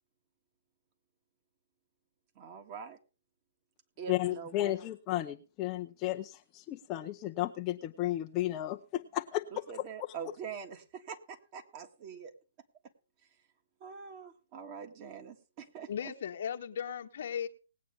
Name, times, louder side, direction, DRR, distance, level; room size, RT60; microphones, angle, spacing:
voice 1, 2.4-3.0 4.0-4.8 9.5-12.3 13.8-16.1, right 6 dB, 35° right, 5 dB, 2.0 m, -44 dB
voice 2, 4.1-9.4 10.0-10.1, left 15 dB, 25° left, 3 dB, 0.7 m, -33 dB
voice 3, 15.9-17.5, left 8 dB, 60° left, 4 dB, 1.3 m, -36 dB
19.5 x 8.6 x 3.5 m, 0.34 s
hypercardioid pair, 145°, 0 cm